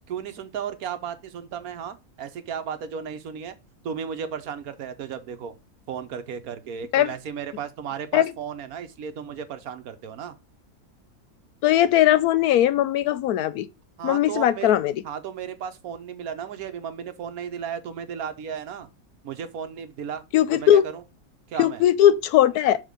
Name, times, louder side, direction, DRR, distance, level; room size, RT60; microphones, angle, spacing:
voice 1, 0.1-3.6 3.8-5.6 5.9-10.4 14.0-14.7 15.0-18.9 19.2-20.2 20.5-21.0 21.5-21.8, right 7 dB, 75° right, 1.3 m, -34 dB
voice 2, 11.6-13.7 14.0-14.9 20.3-20.8 21.6-22.8, left 11 dB, 85° left, 1.1 m, -19 dB
6.6 x 3.6 x 5.1 m
omnidirectional pair, 1.6 m